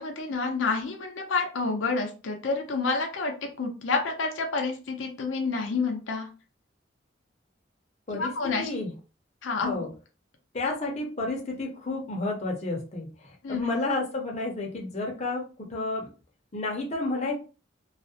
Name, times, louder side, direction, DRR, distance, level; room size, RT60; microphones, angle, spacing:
voice 1, 0.0-6.3 8.1-8.7 9.4-9.8 13.4-13.6, left 4 dB, 85° left, 3 dB, 0.5 m, -29 dB
voice 2, 8.6-8.9 9.6-9.9 10.5-16.1 16.5-17.3, left 2 dB, 35° left, 0 dB, 0.6 m, -31 dB
2.3 x 2.1 x 2.6 m, 0.34 s
head